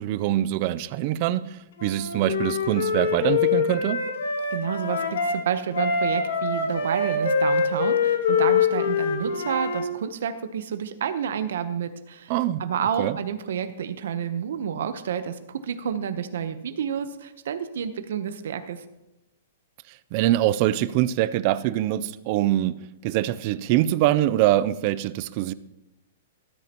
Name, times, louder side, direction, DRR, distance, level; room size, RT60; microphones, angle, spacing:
voice 1, 0.0-4.0 12.3-12.6 13.0-13.2 20.1-25.5, right 14 dB, 35° right, 0.4 m, -24 dB
Wind instrument woodwind instrument, 1.8-5.4 5.7-9.9, left 5 dB, 70° left, 2.1 m, -24 dB
voice 2, 4.5-12.3 12.6-18.8, right 8 dB, 70° right, 0.9 m, -29 dB
13.5 x 13.0 x 3.0 m
hypercardioid pair, 160°, 0 cm